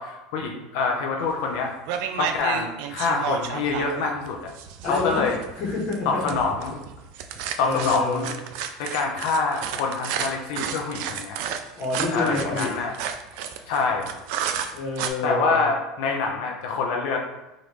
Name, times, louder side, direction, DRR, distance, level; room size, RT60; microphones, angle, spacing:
voice 1, 0.0-1.7 2.2-4.4 4.9-5.4 6.1-6.8 7.6-8.3 8.8-11.4 12.1-12.9 13.7-14.2 15.2-17.2, left 4 dB, 60° left, 1 dB, 0.5 m, -25 dB
sound 1, 1.3-1.5 1.9-15.1, right 8 dB, 55° right, 0.3 m, -32 dB
voice 2, 4.8-5.2 5.6-6.3 7.6-8.4 11.8-12.7 14.7-15.6, left 3 dB, 40° left, -4 dB, 1.1 m, -28 dB
5.0 x 2.6 x 3.0 m, 0.99 s
cardioid pair, 175°, 0 cm